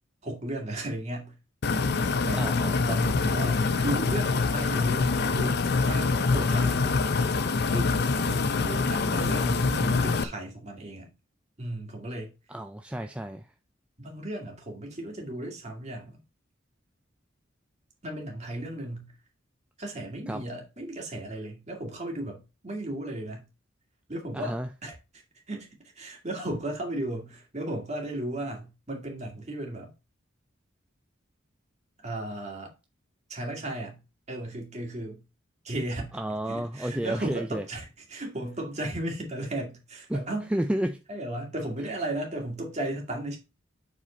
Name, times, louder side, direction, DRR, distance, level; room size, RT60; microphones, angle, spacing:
voice 1, 0.2-1.4 1.9-2.4 2.8-7.1 7.7-7.9 8.5-11.1 11.6-12.3 14.0-16.2 18.0-19.1 19.8-23.5 24.1-25.2 25.5-29.9 32.0-32.7 33.3-34.0 34.3-35.2 35.6-36.2 36.5-40.5 41.1-43.4, right 1 dB, 35° right, 2.2 m, -35 dB
sound 1, 1.6-10.2, left 4 dB, 55° left, 0.6 m, -25 dB
voice 2, 2.4-2.8 12.5-13.5 20.3-20.4 24.3-24.7 36.1-37.6 40.1-40.2 40.5-41.0, right 1 dB, 5° right, 0.3 m, -31 dB
7.3 x 4.2 x 4.3 m
head